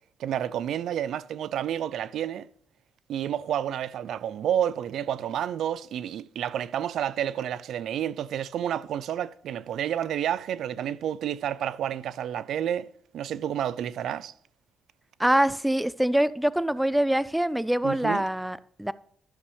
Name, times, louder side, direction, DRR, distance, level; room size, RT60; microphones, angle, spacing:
voice 1, 0.2-2.5 3.1-12.9 13.1-14.3 17.8-18.2, right 10 dB, 75° right, 0.4 m, -30 dB
voice 2, 15.2-18.9, right 1 dB, 5° right, 0.4 m, -24 dB
13.0 x 6.9 x 3.4 m
cardioid pair, 90°, 0 cm